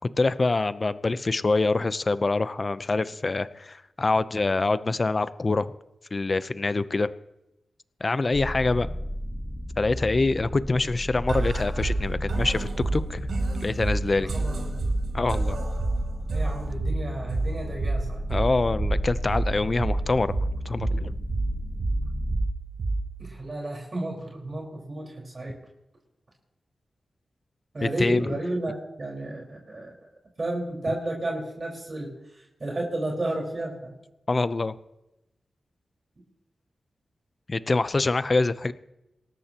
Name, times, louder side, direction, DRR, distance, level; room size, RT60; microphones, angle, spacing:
voice 1, 0.2-5.7 6.1-7.1 8.0-8.9 9.8-13.3 13.6-14.3 15.1-15.6 18.3-21.1 27.8-28.3 34.3-34.7 37.5-38.7, left 3 dB, 40° left, 14 dB, 0.7 m, -25 dB
sound 1, 8.3-22.5, equal, 15° left, 1.3 m, -33 dB
sound 2, 11.3-23.3, right 2 dB, 85° right, 3.0 m, -30 dB
voice 2, 14.2-14.9 16.3-18.2 23.2-25.6 27.7-29.9 30.4-34.0, right 1 dB, 40° right, -2 dB, 4.7 m, -32 dB
27.5 x 13.5 x 3.0 m, 0.91 s
cardioid pair, 75°, 0 cm